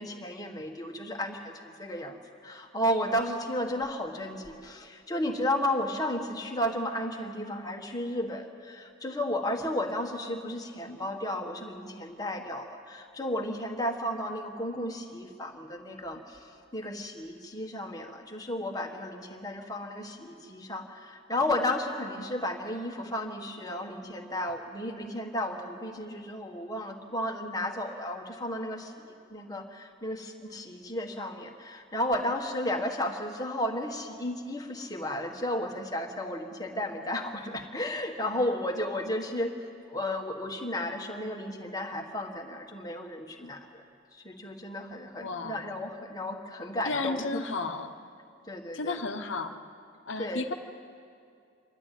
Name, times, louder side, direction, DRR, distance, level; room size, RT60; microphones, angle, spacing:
voice 1, 0.0-39.6 39.9-43.8 44.1-47.5 48.5-49.1 50.2-50.5, left 1 dB, 20° left, 3 dB, 1.5 m, -33 dB
voice 2, 45.2-45.7 46.8-47.9 48.7-49.5 50.1-50.5, left 3 dB, 70° left, 7 dB, 1.0 m, -33 dB
25.5 x 12.0 x 9.2 m, 2.4 s
head